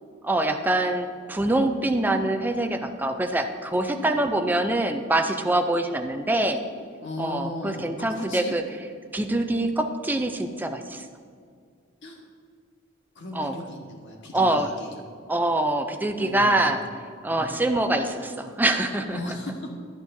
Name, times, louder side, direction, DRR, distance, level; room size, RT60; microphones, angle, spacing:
voice 1, 0.2-6.6 7.2-8.6 9.1-11.1 13.3-13.5 14.3-14.7 15.3-16.8 17.2-19.2, right 1 dB, 10° right, 6 dB, 0.4 m, -24 dB
voice 2, 7.0-8.6 12.0-12.2 13.1-14.9 16.2-16.8 17.3-17.6 19.1-19.8, left 1 dB, 65° left, 1 dB, 1.3 m, -36 dB
11.0 x 8.8 x 2.7 m, 2.2 s
head